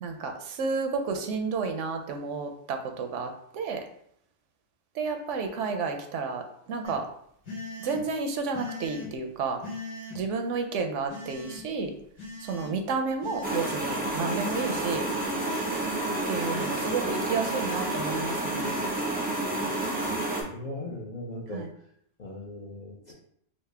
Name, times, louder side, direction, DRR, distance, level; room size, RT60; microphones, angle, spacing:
voice 1, 0.0-3.8 5.0-6.4 6.7-7.0 7.8-9.6 10.1-11.9 12.5-15.1 16.3-18.8 21.5-21.7, right 4 dB, 80° right, 5 dB, 0.9 m, -31 dB
sound 1, 6.8-6.9 7.5-8.0 8.5-9.1 9.6-10.2 11.1-11.6 12.2-12.7 13.2-13.7 14.3-14.8 15.3-15.9 16.4-16.9 17.4-18.0 18.5-19.0 19.6-20.1, left 1 dB, 85° left, 1.6 m, -41 dB
sound 2, 13.4-20.4, right 1 dB, 10° right, 0.5 m, -30 dB
voice 2, 20.0-21.6 22.2-23.1, left 1 dB, 50° left, -2 dB, 0.5 m, -39 dB
4.1 x 2.0 x 3.2 m, 0.67 s
omnidirectional pair, 1.3 m